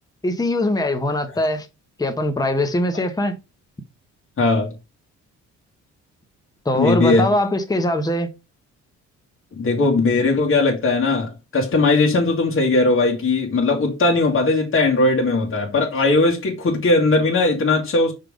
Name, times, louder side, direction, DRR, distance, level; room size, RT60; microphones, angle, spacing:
voice 1, 0.2-1.7 2.0-3.4 6.6-8.3, left 1 dB, 10° left, 1.1 m, -21 dB
voice 2, 4.4-4.7 6.7-7.3 9.5-18.1, left 3 dB, 45° left, 2.0 m, -19 dB
5.8 x 3.6 x 5.0 m
cardioid pair, 90°, 30 cm